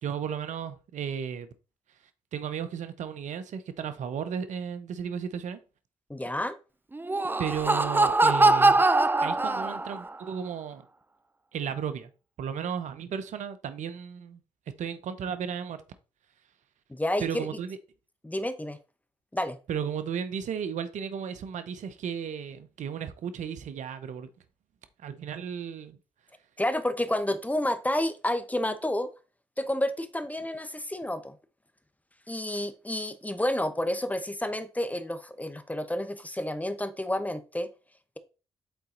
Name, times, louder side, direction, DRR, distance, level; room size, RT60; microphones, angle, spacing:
voice 1, 0.0-1.5 2.3-5.6 7.4-8.8 9.2-10.8 11.5-12.1 12.4-14.4 14.8-15.8 17.2-17.8 19.7-24.3 25.0-26.0, right 7 dB, 70° right, 0.9 m, -34 dB
voice 2, 6.1-6.5 16.9-17.5 18.2-18.8 19.3-19.6 26.6-29.1 29.6-31.3 32.3-37.7, left 1 dB, 10° left, 1.0 m, -30 dB
Laughter, 6.9-10.1, right 2 dB, 15° right, 0.5 m, -22 dB
8.2 x 4.0 x 3.9 m
supercardioid pair, 50°, 13 cm